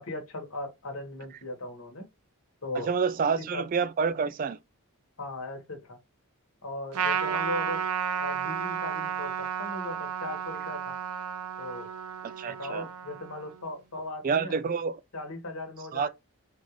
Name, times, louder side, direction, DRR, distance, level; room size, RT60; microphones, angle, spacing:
voice 1, 0.0-2.0 2.6-2.9 3.2-3.3 3.5-3.6 5.2-6.0 6.6-7.9 8.2-11.0 11.6-11.9 12.5-14.6 15.1-16.1, left 1 dB, 70° left, 1.3 m, -38 dB
voice 2, 2.7-4.6 7.2-7.4 12.2-12.9 14.2-15.0 15.9-16.1, right 5 dB, 40° right, 0.3 m, -28 dB
Trumpet, 6.9-13.6, right 7 dB, 85° right, 0.6 m, -32 dB
3.9 x 2.5 x 3.0 m
head